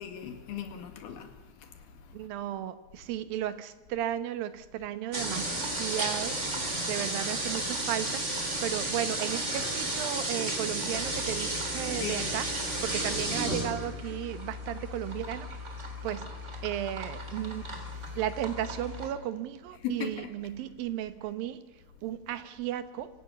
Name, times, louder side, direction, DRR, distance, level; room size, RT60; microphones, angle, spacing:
voice 1, 0.0-1.3 1.6-1.8 12.0-12.3 19.8-20.3, left 8 dB, 70° left, 3.8 m, -37 dB
voice 2, 2.1-6.4 6.9-8.2 8.6-12.5 12.8-15.5 16.0-16.3 16.6-17.7 18.2-21.6 22.0-23.1, right 11 dB, 70° right, 2.7 m, -34 dB
sound 1, 5.1-19.1, right 1 dB, 20° right, 3.5 m, -33 dB
25.5 x 16.0 x 7.1 m
omnidirectional pair, 4.5 m